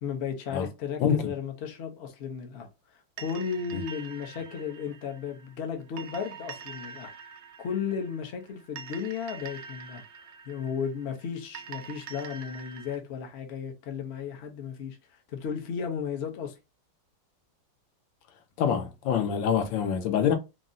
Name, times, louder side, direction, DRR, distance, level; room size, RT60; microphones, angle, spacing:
voice 1, 0.0-7.1 7.6-10.0 10.4-16.6, left 7 dB, 65° left, 0.6 m, -35 dB
voice 2, 1.0-1.3 3.7-3.8 18.6-20.4, left 8 dB, 85° left, 1.3 m, -25 dB
sound 1, 3.2-13.0, right 6 dB, 85° right, 0.7 m, -45 dB
3.8 x 2.0 x 2.5 m
omnidirectional pair, 2.0 m